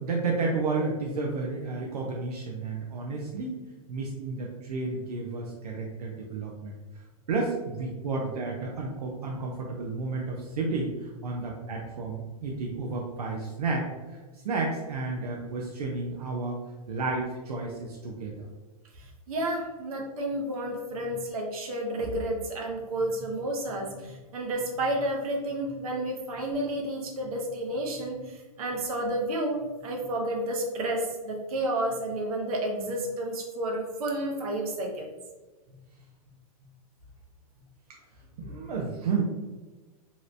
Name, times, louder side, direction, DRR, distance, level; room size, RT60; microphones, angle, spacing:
voice 1, 0.0-3.6 3.9-6.8 7.3-14.2 14.4-16.6 16.9-18.5 38.4-39.2, right 3 dB, 85° right, -1 dB, 0.6 m, -31 dB
voice 2, 19.3-35.1 38.4-38.5, right 1 dB, 70° right, 0 dB, 0.9 m, -31 dB
3.0 x 2.9 x 2.6 m, 1.2 s
hypercardioid pair, 145°, 19 cm